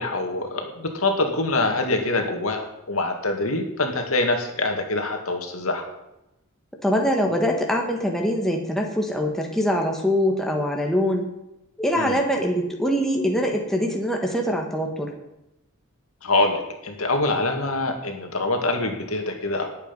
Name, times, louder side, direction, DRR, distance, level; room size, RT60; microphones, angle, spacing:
voice 1, 0.0-5.8 12.0-12.2 16.2-19.7, left 2 dB, 85° left, 4 dB, 2.2 m, -25 dB
voice 2, 6.8-11.3 11.8-15.1, equal, ahead, 1 dB, 1.7 m, -23 dB
18.5 x 8.3 x 5.4 m, 0.92 s
head